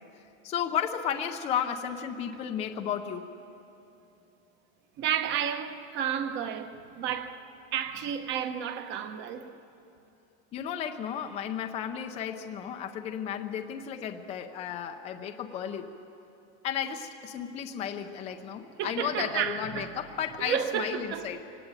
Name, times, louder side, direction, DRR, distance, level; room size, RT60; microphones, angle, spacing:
voice 1, 0.4-3.3 10.5-15.9 16.6-21.4, left 8 dB, 15° left, 0.5 m, -33 dB
voice 2, 5.0-7.4 7.7-9.5 18.8-19.9 20.4-21.3, right 9 dB, 30° right, 0.9 m, -31 dB
24.0 x 18.0 x 9.0 m
supercardioid pair, 175°, 38 cm